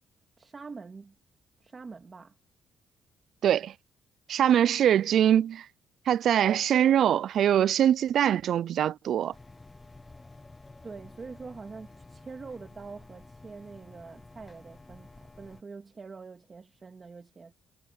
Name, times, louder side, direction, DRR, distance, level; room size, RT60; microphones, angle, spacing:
voice 1, 0.4-1.1 1.6-2.4 10.8-17.5, right 4 dB, 35° right, 2.1 m, -45 dB
voice 2, 3.4-3.7 4.3-5.6 6.1-9.3, right 10 dB, 70° right, 0.3 m, -23 dB
sound 1, 9.3-15.6, left 2 dB, 20° left, 1.1 m, -51 dB
cardioid pair, 90°, 0 cm